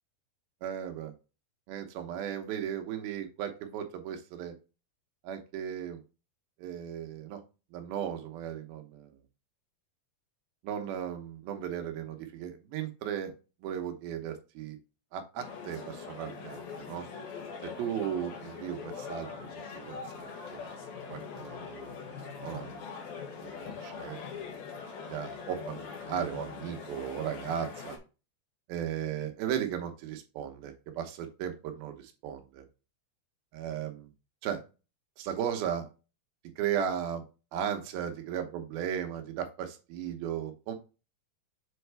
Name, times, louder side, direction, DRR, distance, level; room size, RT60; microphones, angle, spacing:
voice 1, 0.6-1.1 1.7-4.5 5.2-6.0 6.6-7.4 7.7-9.1 10.6-13.3 13.6-14.8 15.1-17.1 17.6-19.9 20.5-20.6 21.1-22.0 22.4-22.8 23.4-24.2 25.1-28.0 28.7-32.7 33.5-34.1 34.4-34.6 35.2-35.9 36.6-37.2 37.5-40.8, right 9 dB, 85° right, 6 dB, 2.9 m, -36 dB
sound 1, 15.4-28.0, left 5 dB, 90° left, 3.4 m, -42 dB
7.6 x 4.4 x 3.4 m, 0.31 s
omnidirectional pair, 4.2 m